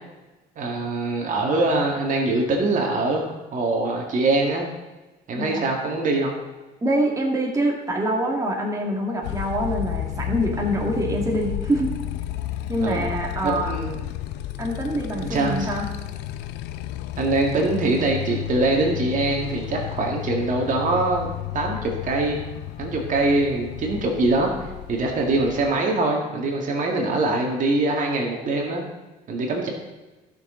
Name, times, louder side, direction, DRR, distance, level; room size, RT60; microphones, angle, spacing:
voice 1, 0.6-4.7 5.3-6.4 12.8-13.1 13.4-14.0 15.2-15.7 17.2-21.3 21.5-22.4 22.8-24.5 24.9-28.8 29.3-29.7, right 2 dB, 50° right, 1 dB, 1.9 m, -23 dB
voice 2, 6.8-12.0 12.7-13.8 14.6-15.9, right 1 dB, 20° right, -1 dB, 2.0 m, -25 dB
Motorcycle, 9.2-25.7, left 13 dB, 90° left, 0.5 m, -32 dB
15.5 x 6.2 x 3.8 m, 1.1 s
cardioid pair, 110°, 17 cm